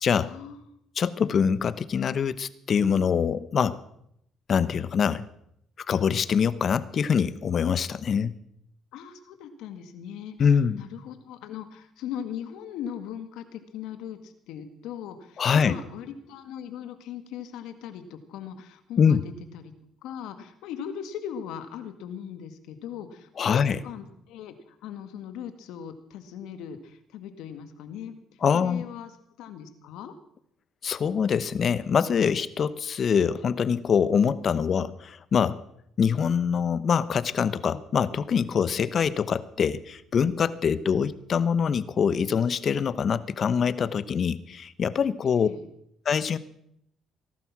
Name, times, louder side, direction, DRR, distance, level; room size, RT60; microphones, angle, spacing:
voice 1, 0.2-0.8 8.9-10.4 10.7-19.7 20.0-28.2 28.5-29.1 29.4-30.1 45.3-45.7, left 9 dB, 80° left, 9 dB, 1.8 m, -39 dB
voice 2, 1.0-3.8 4.5-5.2 5.9-8.3 10.4-10.8 15.4-15.7 19.0-19.2 23.4-23.8 28.4-28.8 30.8-35.6 36.0-45.5 46.0-46.4, left 7 dB, 50° left, 16 dB, 0.9 m, -24 dB
18.5 x 12.0 x 6.1 m, 0.74 s
cardioid pair, 90°, 0 cm